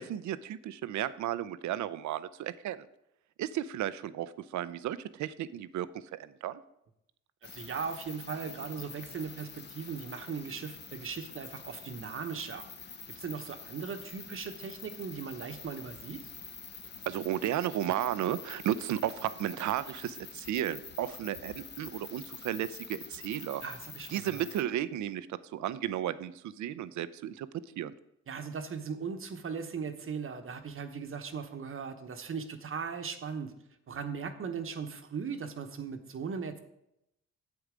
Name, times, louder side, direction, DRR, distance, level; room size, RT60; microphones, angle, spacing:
voice 1, 0.0-2.9 3.4-6.6 17.1-23.6 24.1-27.9, right 11 dB, 70° right, 15 dB, 0.6 m, -34 dB
sound 1, 7.4-24.6, left 5 dB, 35° left, 1.0 m, -47 dB
voice 2, 7.4-12.7 13.1-16.2 23.6-24.5 28.3-33.5 33.9-36.6, right 6 dB, 45° right, 7 dB, 1.0 m, -38 dB
8.1 x 7.9 x 5.0 m, 0.82 s
cardioid pair, 90°, 30 cm